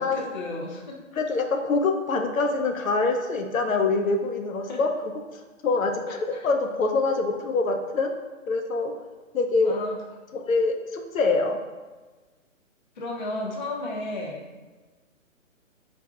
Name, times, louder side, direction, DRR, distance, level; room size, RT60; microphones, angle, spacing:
voice 1, 0.0-1.0 4.7-4.8 6.1-6.5 9.6-10.0 13.0-14.5, left 2 dB, 35° left, -2 dB, 0.4 m, -33 dB
voice 2, 1.2-4.9 5.3-5.9 6.4-8.1 8.5-8.9 9.3-9.7 10.3-11.6, left 3 dB, 80° left, 4 dB, 0.6 m, -24 dB
4.2 x 2.5 x 2.4 m, 1.3 s
hypercardioid pair, 145°, 40 cm